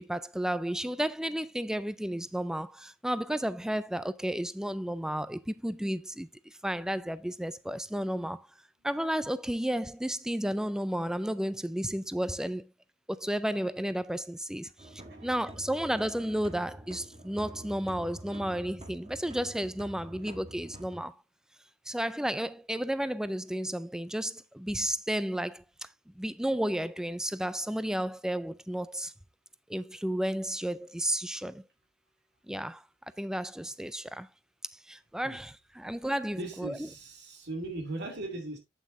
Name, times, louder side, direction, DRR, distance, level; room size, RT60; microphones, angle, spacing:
voice 1, 0.0-8.5 8.8-12.7 13.1-21.1 21.9-25.9 26.2-29.1 29.7-31.6 32.5-32.8 33.2-34.3 34.7-36.8, right 1 dB, 5° right, 0.3 m, -32 dB
sound 1, 14.8-21.0, right 1 dB, 30° right, 1.3 m, -47 dB
voice 2, 36.3-38.6, right 2 dB, 55° right, 2.6 m, -39 dB
8.4 x 7.6 x 2.6 m
head